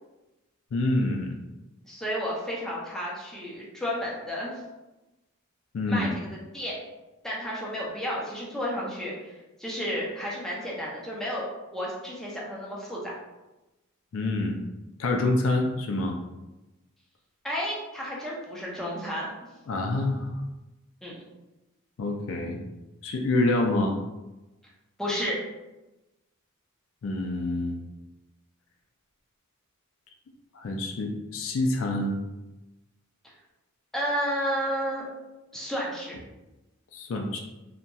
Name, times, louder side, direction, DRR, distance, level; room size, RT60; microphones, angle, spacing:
voice 1, 0.7-1.4 5.7-6.2 14.1-14.6 15.0-16.2 19.7-20.3 22.0-22.6 23.0-24.0 27.0-27.7 30.5-32.2 36.9-37.4, left 2 dB, 65° left, 3 dB, 0.3 m, -27 dB
voice 2, 1.8-4.6 5.9-6.8 7.2-11.5 11.7-13.1 17.4-19.3 21.0-21.2 25.0-25.4 33.9-35.0 35.5-36.2, equal, ahead, -5 dB, 0.5 m, -32 dB
2.8 x 2.7 x 2.2 m, 1.0 s
head